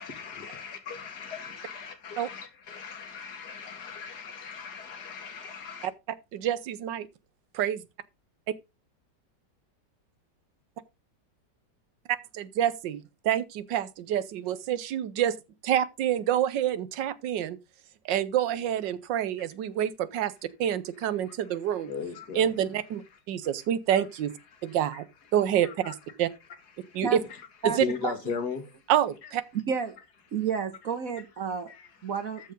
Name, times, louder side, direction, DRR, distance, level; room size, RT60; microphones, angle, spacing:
voice 1, 0.0-5.9 21.8-22.5 23.9-24.0 24.6-25.0 25.6-25.9 26.8-27.1 27.8-28.7 31.7-31.9 32.4-32.5, left 5 dB, 60° left, 2.2 m, -38 dB
voice 2, 6.3-7.1 7.5-7.8 12.3-15.3 15.6-17.6 18.0-20.3 20.6-21.9 22.3-23.0 23.3-24.3 24.6-25.0 25.3-26.3 26.9-27.2 27.6-27.8 28.9-29.4, right 10 dB, 85° right, 1.5 m, -27 dB
voice 3, 27.6-28.1 29.5-30.0 30.3-31.7 32.0-32.5, right 6 dB, 55° right, 1.3 m, -31 dB
13.5 x 4.5 x 5.2 m
omnidirectional pair, 1.9 m